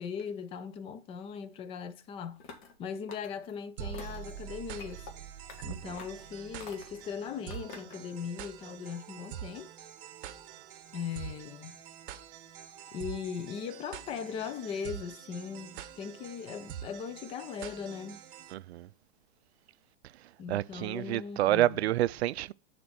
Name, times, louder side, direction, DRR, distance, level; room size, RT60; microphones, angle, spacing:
voice 1, 0.0-2.4 2.8-5.1 5.6-9.7 10.9-11.8 12.9-18.2 20.4-21.9, left 6 dB, 15° left, 0.5 m, -39 dB
sound 1, 2.4-2.8 3.1-3.5 3.9-4.3 4.8-5.1 5.5-5.6 6.0-6.2 6.6-7.0 7.5-8.0, left 4 dB, 45° left, 1.8 m, -48 dB
sound 2, 3.8-18.5, right 10 dB, 55° right, 1.0 m, -45 dB
voice 2, 18.5-18.9 20.5-22.5, right 14 dB, 75° right, 0.5 m, -28 dB
6.9 x 4.4 x 6.2 m
hypercardioid pair, 140°, 32 cm